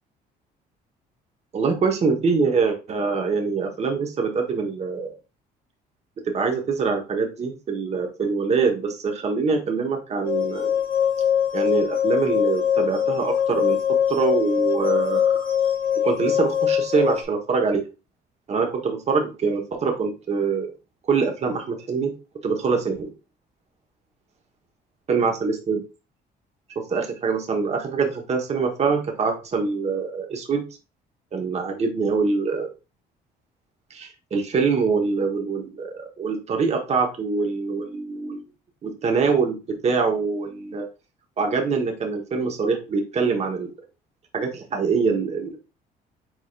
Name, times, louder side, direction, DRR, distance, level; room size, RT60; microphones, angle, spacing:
voice 1, 1.5-5.1 6.2-10.7 11.5-13.8 14.1-15.4 16.0-17.8 18.5-20.7 21.1-22.1 22.4-23.1 25.1-25.8 26.7-30.6 31.3-32.7 33.9-38.4 38.8-39.5 39.8-40.9 41.4-43.7 44.3-45.6, right 5 dB, 40° right, 2 dB, 1.3 m, -24 dB
sound 1, 10.2-17.2, left 9 dB, 60° left, 1.5 m, -22 dB
4.9 x 4.0 x 2.5 m, 0.30 s
cardioid pair, 110°, 17 cm